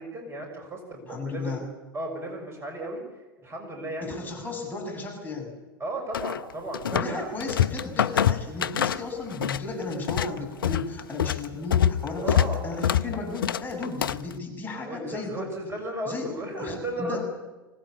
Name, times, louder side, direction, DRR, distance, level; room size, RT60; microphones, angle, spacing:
voice 1, 0.0-1.6 1.9-3.0 3.4-4.1 5.8-7.3 12.2-12.6 14.8-17.2, right 1 dB, 20° right, 2 dB, 6.3 m, -34 dB
voice 2, 1.1-1.6 4.0-5.5 6.9-15.5 16.1-16.3 16.6-17.2, left 3 dB, 15° left, 0 dB, 7.6 m, -34 dB
sound 1, 6.1-7.1 7.4-9.6 9.9-14.3, left 9 dB, 70° left, 0.7 m, -25 dB
25.0 x 18.5 x 8.6 m, 1.2 s
figure-of-eight pair, 85°, 12 cm